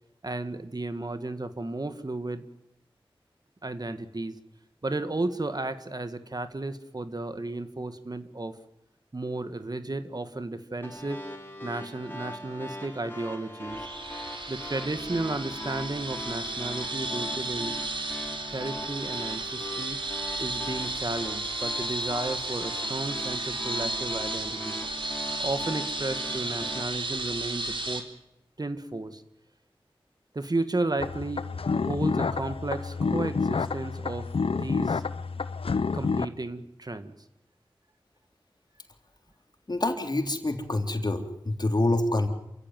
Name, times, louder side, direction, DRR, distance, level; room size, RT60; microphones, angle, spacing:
voice 1, 0.2-2.4 3.6-4.3 4.8-8.5 9.1-11.2 11.6-13.8 14.5-17.8 18.5-20.0 20.4-24.8 25.4-28.0 28.6-29.1 30.4-31.5 31.9-35.0 35.9-37.1, right 2 dB, 45° right, 10 dB, 1.9 m, -33 dB
sound 1, 10.8-26.8, left 1 dB, 20° left, 4.8 m, -41 dB
sound 2, 13.7-28.0, right 2 dB, 60° right, 3.8 m, -33 dB
sound 3, 31.0-36.3, left 4 dB, 85° left, 0.9 m, -29 dB
voice 2, 39.7-42.3, left 2 dB, 50° left, 5 dB, 3.6 m, -26 dB
28.0 x 15.5 x 9.4 m, 0.84 s
wide cardioid pair, 50°, 9 cm